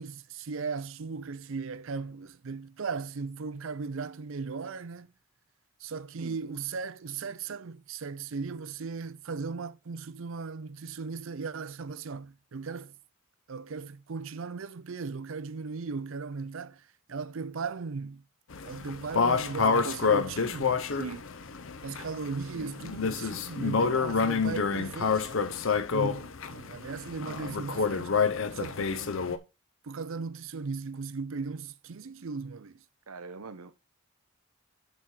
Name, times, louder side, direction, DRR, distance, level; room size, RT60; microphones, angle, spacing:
voice 1, 0.0-5.1 5.8-12.9 13.5-16.8 17.1-18.2 18.6-20.8 21.8-25.3 25.9-28.2 28.5-29.4 29.8-32.8, right 4 dB, 65° right, 0.5 m, -37 dB
sound 1, 18.5-29.4, left 5 dB, 65° left, 0.7 m, -28 dB
voice 2, 19.6-20.0 20.9-21.3 22.5-22.7 24.5-24.8 33.1-33.7, right 4 dB, 90° right, 0.9 m, -41 dB
7.8 x 4.9 x 4.4 m
head